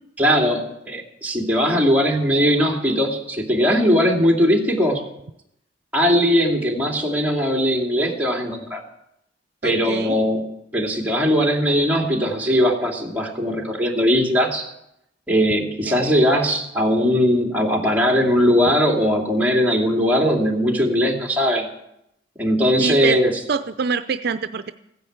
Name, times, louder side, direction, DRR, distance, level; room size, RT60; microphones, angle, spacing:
voice 1, 0.2-5.1 5.9-8.8 9.6-14.6 15.3-21.7 22.4-23.3, equal, 10° right, 0 dB, 2.7 m, -19 dB
voice 2, 9.6-10.2 15.8-16.0 22.8-23.2 23.5-24.7, right 5 dB, 60° right, 11 dB, 0.6 m, -25 dB
15.5 x 10.5 x 8.1 m, 0.79 s
head